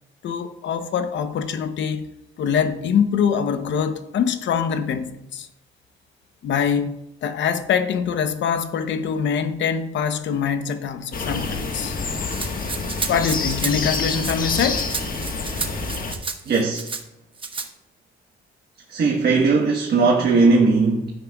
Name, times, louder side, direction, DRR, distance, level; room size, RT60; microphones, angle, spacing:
voice 1, 0.2-2.1 2.4-5.5 6.4-12.0 13.1-14.9, left 7 dB, 70° left, 0.8 m, -24 dB
sound 1, 11.1-16.1, left 4 dB, 45° left, 1.4 m, -27 dB
Rattle (instrument), 12.3-17.0 17.4-17.7, right 4 dB, 25° right, 1.0 m, -31 dB
voice 2, 16.5-16.9 18.9-21.1, right 4 dB, 55° right, 1.3 m, -18 dB
12.0 x 9.8 x 2.3 m
cardioid pair, 90°, 20 cm